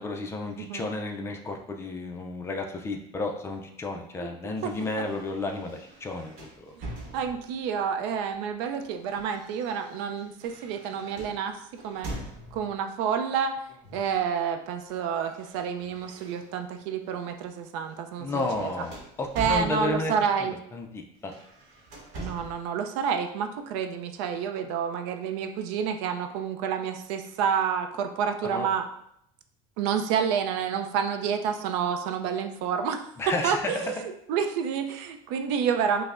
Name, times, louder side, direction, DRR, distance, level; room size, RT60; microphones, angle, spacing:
voice 1, 0.0-6.8 18.2-21.3 28.4-28.7 33.2-34.1, left 2 dB, 15° left, 3 dB, 0.3 m, -32 dB
sound 1, 4.6-7.7 8.6-12.8 13.8-14.2 14.5-16.8 17.3-17.5 17.9-20.2 21.2-22.7, right 1 dB, 55° right, 1.2 m, -43 dB
voice 2, 7.1-11.6 11.8-12.1 12.5-13.6 13.9-18.7 19.4-20.5 22.2-28.9 29.8-33.0 33.4-34.0 34.3-36.0, right 7 dB, 85° right, 7 dB, 0.4 m, -29 dB
5.4 x 2.0 x 2.4 m, 0.74 s
cardioid pair, 150°, 15 cm